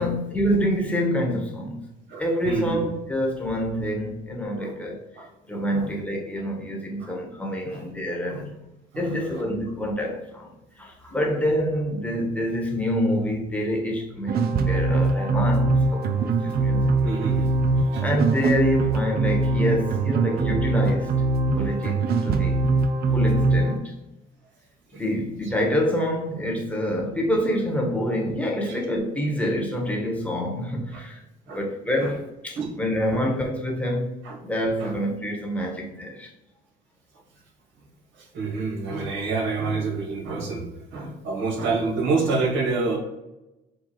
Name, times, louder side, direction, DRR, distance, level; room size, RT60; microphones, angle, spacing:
voice 1, 0.0-1.9 2.2-5.1 5.4-8.5 8.9-10.5 10.8-17.0 18.0-21.2 21.5-22.6 23.1-24.0 24.9-34.1 34.4-36.3, equal, 5° left, 1.3 m, -27 dB
voice 2, 2.1-2.8 4.6-4.7 5.2-5.3 5.7-5.9 7.0-7.1 7.7-7.8 8.3-8.5 8.9-9.4 17.0-17.6 17.9-18.0 24.9-25.0 28.6-28.8 30.9-31.0 31.5-31.6 32.0-32.1 32.5-32.7 33.1-33.3 34.2-34.4 34.8-34.9 38.2-40.7 40.9-43.0, right 4 dB, 65° right, 1.4 m, -28 dB
sound 1, 14.3-23.8, right 3 dB, 50° right, 0.5 m, -22 dB
4.5 x 2.3 x 4.5 m
supercardioid pair, 65°, 20 cm